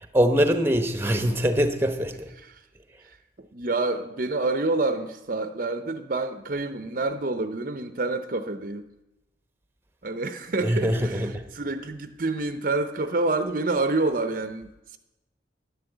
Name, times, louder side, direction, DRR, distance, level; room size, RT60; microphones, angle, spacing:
voice 1, 0.1-2.2 10.6-11.4, equal, 10° right, 8 dB, 1.0 m, -23 dB
voice 2, 3.0-8.9 10.0-15.0, right 2 dB, 45° right, 9 dB, 0.7 m, -28 dB
12.0 x 10.5 x 7.9 m, 0.96 s
head